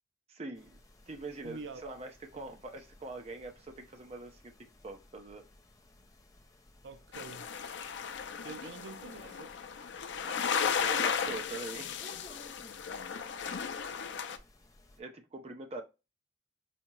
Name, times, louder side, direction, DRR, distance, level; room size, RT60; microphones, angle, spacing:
voice 1, 0.3-0.8 1.1-4.5 4.8-5.4 10.2-12.0 13.4-13.7 15.0-15.8, right 3 dB, 35° right, 0.6 m, -44 dB
sound 1, 0.5-15.0, left 1 dB, 20° left, 0.5 m, -59 dB
voice 2, 1.4-1.9 2.3-2.5 6.8-7.5 8.4-9.5, right 4 dB, 80° right, 0.4 m, -46 dB
sound 2, 7.1-14.4, left 7 dB, 80° left, 0.4 m, -35 dB
4.3 x 2.8 x 2.3 m
head